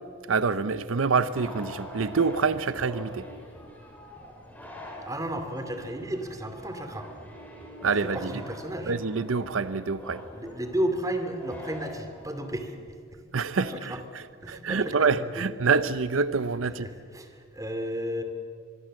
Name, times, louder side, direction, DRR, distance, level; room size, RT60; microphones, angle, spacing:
voice 1, 0.3-3.2 7.8-8.3 8.9-10.2 13.3-13.7 14.5-16.9, right 5 dB, 90° right, 0.7 m, -26 dB
sound 1, 1.3-12.7, equal, 10° left, 4.5 m, -44 dB
voice 2, 5.0-7.1 8.0-8.9 10.3-12.7 13.1-13.2 13.5-14.0 14.4-15.4 16.8-18.2, right 1 dB, 15° right, 2.4 m, -33 dB
24.5 x 22.0 x 7.6 m
head